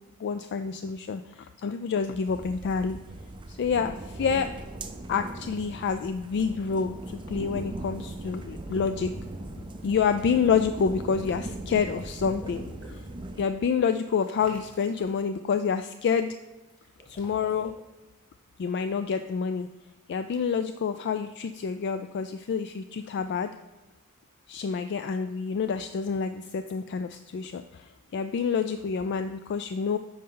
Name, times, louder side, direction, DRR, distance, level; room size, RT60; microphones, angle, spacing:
voice 1, 0.2-3.0 3.5-4.5 5.1-9.1 9.8-13.0 13.4-16.3 17.1-17.7 18.6-19.7 20.1-23.5 24.5-30.0, left 6 dB, 50° left, 9 dB, 0.3 m, -28 dB
sound 1, 2.3-13.4, right 1 dB, 20° right, 0.5 m, -39 dB
Water / Liquid, 10.8-13.1 14.2-15.2 16.7-17.7, equal, 5° left, 2.0 m, -49 dB
9.3 x 5.5 x 3.8 m, 1.1 s
head